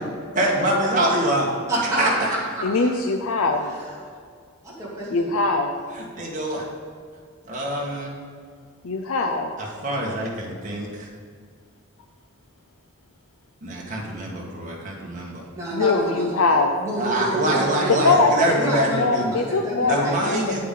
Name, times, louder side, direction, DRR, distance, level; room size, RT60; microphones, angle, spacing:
voice 1, 0.3-1.4 1.8-2.3 5.9-6.7 7.5-8.1 9.6-11.1 13.6-15.4 17.0-19.3 19.8-20.6, right 1 dB, 35° right, -3 dB, 1.7 m, -25 dB
voice 2, 1.7-2.9 3.7-4.1 4.6-5.3 15.6-18.0 18.4-20.6, right 1 dB, 15° right, -7 dB, 2.6 m, -29 dB
voice 3, 2.6-3.7 5.1-5.7 8.8-9.5 15.7-16.7 18.0-18.3 18.7-20.6, left 3 dB, 85° left, 3 dB, 0.6 m, -22 dB
9.0 x 8.3 x 3.9 m, 2.1 s
head